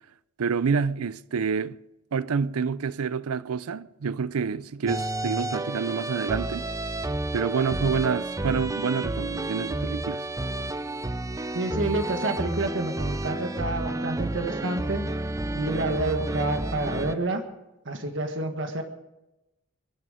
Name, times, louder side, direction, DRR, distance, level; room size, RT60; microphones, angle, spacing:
voice 1, 0.4-1.8 2.1-6.7 7.3-10.3, right 5 dB, 90° right, 0.5 m, -28 dB
sound 1, 4.9-17.1, right 2 dB, 15° right, 0.4 m, -31 dB
voice 2, 11.5-15.0 15.5-17.4 17.8-18.8, right 2 dB, 60° right, 1.6 m, -28 dB
23.0 x 11.0 x 5.1 m
head